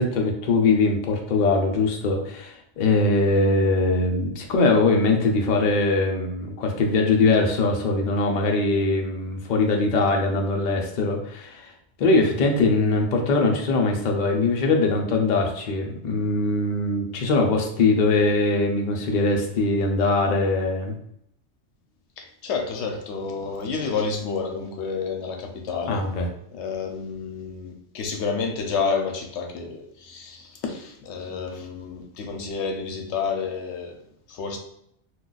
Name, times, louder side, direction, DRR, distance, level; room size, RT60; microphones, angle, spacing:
voice 1, 0.0-11.7 12.0-20.9 25.9-26.3, left 3 dB, 55° left, 2 dB, 0.5 m, -22 dB
voice 2, 22.2-26.0 26.5-34.0 34.3-34.6, left 5 dB, 75° left, 3 dB, 0.9 m, -30 dB
2.3 x 2.3 x 3.8 m, 0.73 s
omnidirectional pair, 1.2 m